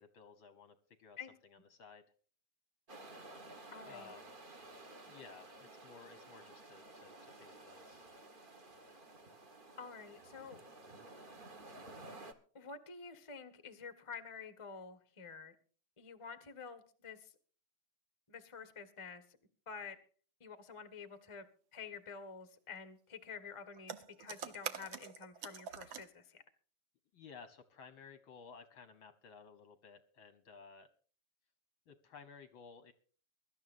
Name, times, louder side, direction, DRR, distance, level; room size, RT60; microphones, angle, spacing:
voice 1, 0.0-1.2 1.4-2.0 3.8-4.4 5.1-8.1 27.1-30.9 31.9-32.9, left 5 dB, 60° left, 10 dB, 1.4 m, -56 dB
sound 1, 2.9-12.3, right 2 dB, 35° right, 0.7 m, -54 dB
voice 2, 3.7-4.1 9.8-10.6 12.5-15.5 16.0-17.3 18.3-19.2 19.7-20.0 20.4-21.5 21.7-26.4, left 5 dB, 30° left, 10 dB, 0.5 m, -49 dB
sound 2, 23.7-26.1, right 8 dB, 60° right, 1.3 m, -45 dB
23.5 x 12.5 x 2.6 m, 0.43 s
omnidirectional pair, 3.4 m